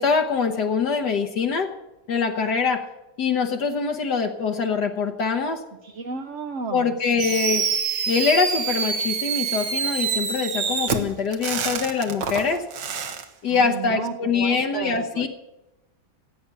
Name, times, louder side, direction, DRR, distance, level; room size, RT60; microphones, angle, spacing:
voice 1, 0.0-1.7 2.1-2.8 3.2-5.6 6.7-7.6 8.1-12.6 13.4-15.3, left 5 dB, 70° left, 4 dB, 1.5 m, -24 dB
voice 2, 5.8-6.9 13.5-15.3, right 5 dB, 55° right, 5 dB, 0.9 m, -33 dB
Fireworks, 7.2-13.2, right 6 dB, 80° right, 1.9 m, -26 dB
16.5 x 8.6 x 8.3 m, 1.0 s
omnidirectional pair, 1.9 m